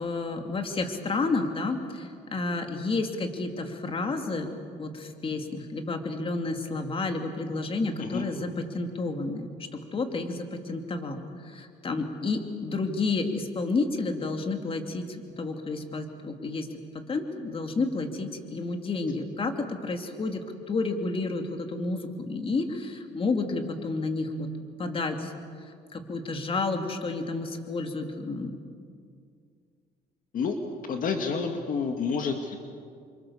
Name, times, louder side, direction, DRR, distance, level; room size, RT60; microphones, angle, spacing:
voice 1, 0.0-4.5 4.8-16.7 16.9-24.5 24.8-25.3 25.6-28.6, left 3 dB, 30° left, 4 dB, 2.9 m, -31 dB
voice 2, 30.9-32.6, left 5 dB, 55° left, 4 dB, 2.3 m, -29 dB
29.0 x 25.5 x 7.3 m, 2.2 s
cardioid pair, 110°, 17 cm